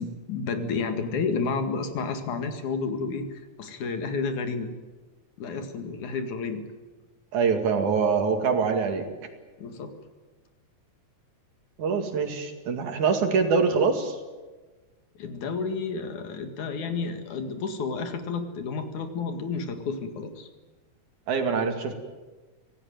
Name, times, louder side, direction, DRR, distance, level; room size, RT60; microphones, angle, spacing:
voice 1, 0.0-4.7 5.4-6.6 9.6-9.9 15.2-20.5, left 4 dB, 80° left, 6 dB, 3.4 m, -31 dB
voice 2, 7.3-9.1 11.8-14.2 21.3-22.0, right 5 dB, 80° right, 5 dB, 3.7 m, -24 dB
25.5 x 17.0 x 9.3 m, 1.3 s
omnidirectional pair, 3.4 m